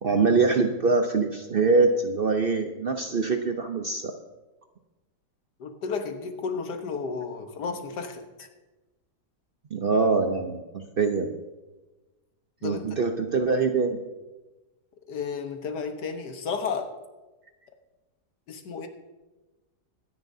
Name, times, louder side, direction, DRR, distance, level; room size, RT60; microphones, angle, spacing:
voice 1, 0.0-4.2 9.7-11.3 12.6-14.0, right 4 dB, 50° right, 5 dB, 0.7 m, -24 dB
voice 2, 5.6-8.5 12.6-12.8 15.1-16.9 18.5-18.9, left 5 dB, 90° left, 6 dB, 1.7 m, -33 dB
23.0 x 9.9 x 2.7 m, 1.1 s
omnidirectional pair, 1.7 m